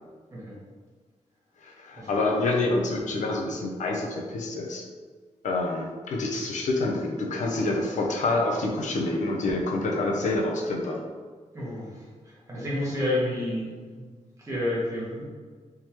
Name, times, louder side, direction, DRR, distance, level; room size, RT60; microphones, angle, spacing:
voice 1, 1.6-4.8 5.4-11.0, left 2 dB, 80° left, 0 dB, 0.6 m, -27 dB
voice 2, 11.5-14.1 14.4-15.3, left 1 dB, 25° right, -7 dB, 1.2 m, -30 dB
3.6 x 3.0 x 2.9 m, 1.5 s
wide cardioid pair, 175°, 12 cm